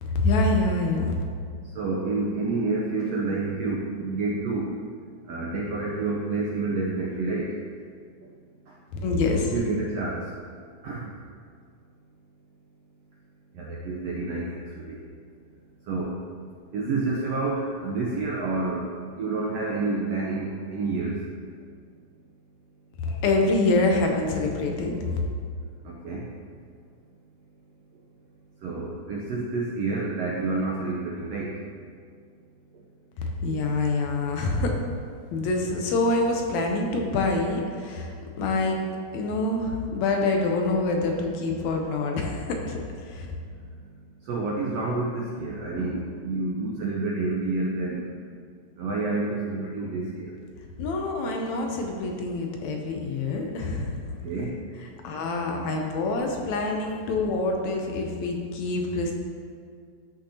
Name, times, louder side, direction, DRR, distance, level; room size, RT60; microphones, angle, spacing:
voice 1, 0.0-1.2 9.0-9.6 23.0-25.2 33.2-34.8 35.3-38.8 39.1-43.3 50.8-54.1 54.8-59.1, left 2 dB, 75° left, 2 dB, 1.8 m, -26 dB
voice 2, 1.7-4.7 5.3-7.5 9.2-10.2 10.8-11.1 13.6-15.0 15.9-16.2 16.7-21.2 25.8-26.3 28.6-31.5 44.3-48.1 48.8-50.3 54.2-54.6, right 3 dB, 80° right, -3 dB, 1.4 m, -29 dB
12.5 x 6.2 x 2.8 m, 2.2 s
omnidirectional pair, 3.7 m